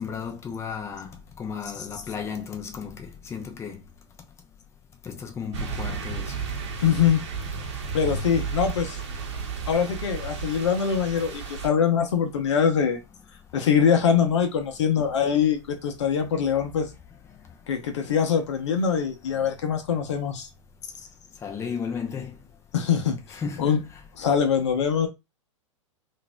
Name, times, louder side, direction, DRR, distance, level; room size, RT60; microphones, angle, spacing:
voice 1, 0.0-3.8 5.0-6.3 21.4-22.4 23.3-23.8, left 6 dB, 15° left, 0.7 m, -34 dB
sound 1, 5.5-11.7, right 5 dB, 60° right, 0.9 m, -33 dB
voice 2, 6.8-7.2 7.9-9.0 9.7-13.0 13.5-16.9 17.7-20.5 22.7-23.2 23.6-23.8 24.2-25.1, left 7 dB, 65° left, 0.8 m, -23 dB
3.9 x 2.6 x 2.2 m
figure-of-eight pair, 100°, 16 cm